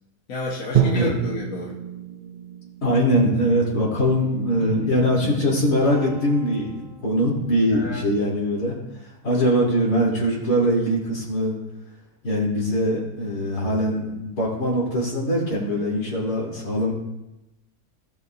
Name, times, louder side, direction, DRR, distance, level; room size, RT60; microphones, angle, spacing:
voice 1, 0.3-1.8 7.7-8.0, left 3 dB, 60° left, -4 dB, 1.6 m, -31 dB
Drum, 0.7-4.7, right 9 dB, 65° right, 0.4 m, -28 dB
voice 2, 2.8-8.8 9.2-11.5 12.2-16.9, equal, 80° left, -5 dB, 3.8 m, -22 dB
Guitar, 4.0-7.3, right 1 dB, 40° left, 1.3 m, -35 dB
17.0 x 6.7 x 2.6 m, 0.95 s
omnidirectional pair, 1.7 m